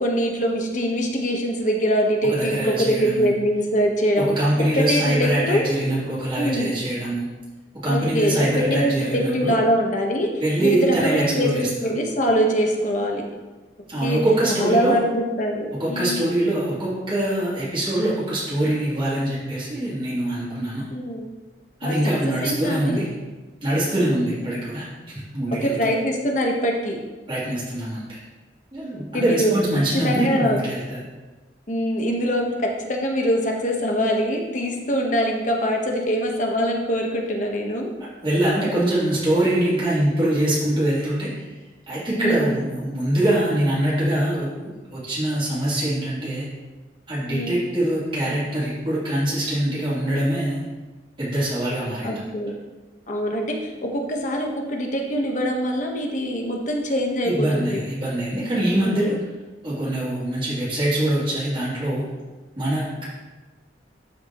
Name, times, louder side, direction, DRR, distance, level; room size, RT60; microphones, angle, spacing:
voice 1, 0.0-4.3 4.7-5.6 6.4-6.7 7.9-10.3 10.6-13.2 14.0-14.2 14.5-16.2 20.9-21.3 21.8-22.0 22.4-23.0 24.5-24.6 25.6-27.0 29.1-29.5 30.0-30.6 31.7-37.9 42.2-42.6 47.3-47.7 52.0-52.5 53.1-57.8 58.8-59.2, equal, 45° left, 1 dB, 1.3 m, -23 dB
voice 2, 2.3-3.3 4.2-7.3 7.8-9.6 10.4-11.9 13.9-15.0 15.8-20.9 21.8-23.1 23.6-25.9 27.3-28.2 28.7-31.0 38.2-41.4 41.9-44.5 44.9-46.5 47.1-50.6 51.2-52.3 57.2-59.1 59.6-62.0 62.5-63.0, right 1 dB, 30° right, -10 dB, 3.0 m, -23 dB
12.5 x 5.8 x 3.1 m, 1.2 s
head